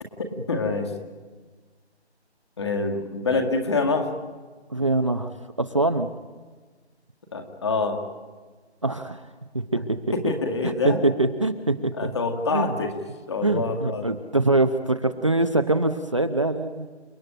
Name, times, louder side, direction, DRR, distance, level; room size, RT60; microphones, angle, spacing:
voice 1, 0.2-0.9 2.6-4.1 7.3-8.0 9.8-9.9 10.1-11.0 12.0-13.0 13.3-14.2, left 3 dB, 25° left, 4 dB, 2.2 m, -26 dB
voice 2, 4.7-5.3 5.6-6.1 8.8-9.2 9.5-10.0 10.6-12.1 12.5-12.7 13.4-16.9, right 2 dB, 25° right, 6 dB, 0.8 m, -23 dB
29.5 x 20.0 x 9.1 m, 1.4 s
figure-of-eight pair, 170°, 34 cm